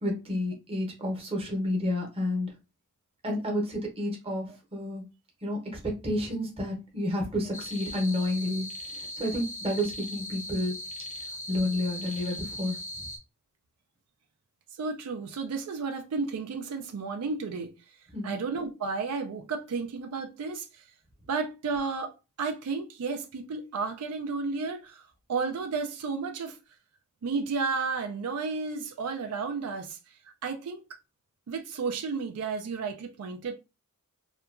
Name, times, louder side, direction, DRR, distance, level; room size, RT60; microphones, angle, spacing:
voice 1, 0.0-2.5 3.2-5.0 5.4-8.7 9.2-10.7 11.5-12.8 18.1-18.3, left 1 dB, 25° right, 0.8 m, -30 dB
sound 1, 7.5-13.2, left 1 dB, 30° left, 0.5 m, -39 dB
voice 2, 14.8-17.7 18.2-20.7 21.3-25.0 25.3-26.6 27.2-30.0 30.4-30.8 31.5-33.5, right 4 dB, 85° right, 0.4 m, -32 dB
2.8 x 2.3 x 2.4 m
head